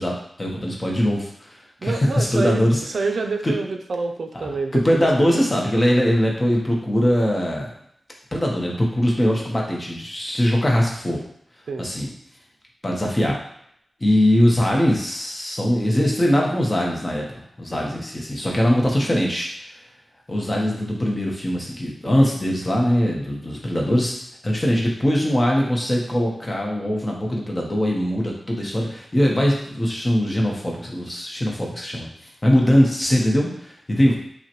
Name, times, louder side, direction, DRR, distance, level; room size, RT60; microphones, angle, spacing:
voice 1, 0.0-2.8 3.4-3.5 4.3-7.7 8.3-11.2 11.8-12.1 12.8-13.4 14.0-19.5 20.3-24.1 24.4-34.1, equal, 25° left, -2 dB, 0.8 m, -21 dB
voice 2, 1.8-5.4 11.7-11.8 17.7-17.9, right 3 dB, 75° right, 4 dB, 0.4 m, -27 dB
5.5 x 2.2 x 2.9 m, 0.70 s
wide cardioid pair, 125°, 0 cm